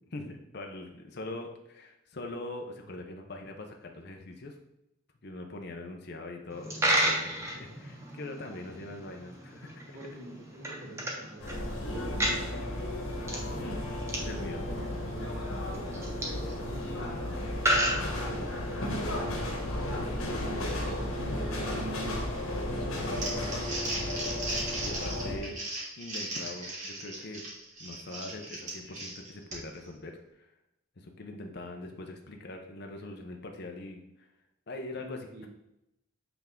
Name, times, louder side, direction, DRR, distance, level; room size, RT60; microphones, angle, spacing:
voice 1, 0.1-4.6 5.2-9.8 13.5-14.6 20.2-21.0 24.8-25.6 26.0-27.5 27.8-30.5 31.0-34.3 34.7-35.5, left 2 dB, 50° left, 3 dB, 0.7 m, -42 dB
Coin (dropping), 6.5-18.8, right 1 dB, 15° right, 0.9 m, -34 dB
voice 2, 9.9-12.7 14.2-19.5 20.4-22.2 22.6-23.6 34.9-35.5, right 1 dB, 85° right, -3 dB, 1.7 m, -45 dB
sound 1, 11.4-25.4, left 1 dB, 85° left, 1.5 m, -34 dB
Crumpling crinkling, 22.9-29.8, right 2 dB, 35° right, 1.7 m, -37 dB
8.0 x 3.5 x 3.7 m, 0.84 s
head